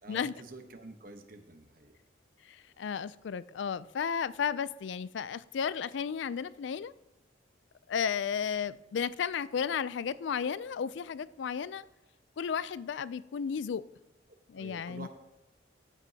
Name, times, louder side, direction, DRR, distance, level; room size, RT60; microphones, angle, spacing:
voice 1, 0.0-1.9 14.6-15.1, right 2 dB, 50° right, 1.1 m, -48 dB
voice 2, 2.5-6.9 7.9-11.9 12.4-13.8 14.5-15.1, left 7 dB, 75° left, 0.4 m, -33 dB
15.0 x 8.0 x 2.8 m
head